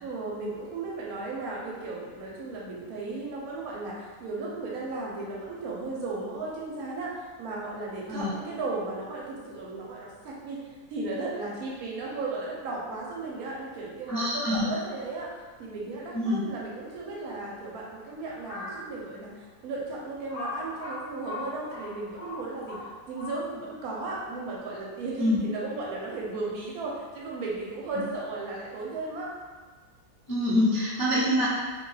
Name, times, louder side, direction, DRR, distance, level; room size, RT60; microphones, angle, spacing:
voice 1, 0.0-10.6 10.9-15.3 15.6-22.8 23.1-29.3, right 3 dB, 75° right, -4 dB, 1.0 m, -35 dB
voice 2, 14.1-14.6 16.1-16.4 25.2-25.4 30.3-31.5, left 1 dB, 20° left, -13 dB, 0.5 m, -25 dB
Crow, 18.3-18.8 19.4-19.5 20.3-23.7, left 3 dB, 80° left, 0.5 m, -39 dB
2.7 x 2.2 x 3.1 m, 1.4 s
omnidirectional pair, 1.6 m